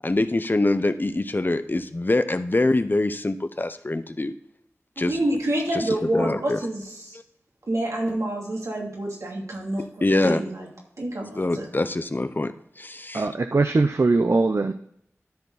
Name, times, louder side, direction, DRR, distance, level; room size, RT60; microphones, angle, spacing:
voice 1, 0.0-4.3 5.0-5.2 5.7-6.6 10.0-10.4 11.4-13.2, left 2 dB, 40° left, 10 dB, 0.7 m, -24 dB
voice 2, 5.1-7.2 7.7-9.9 10.2-10.7 11.0-11.7, right 1 dB, 85° right, -2 dB, 2.7 m, -27 dB
voice 3, 13.1-14.7, right 3 dB, 60° right, 8 dB, 0.5 m, -21 dB
13.0 x 4.6 x 4.0 m, 0.71 s
wide cardioid pair, 55°, 5 cm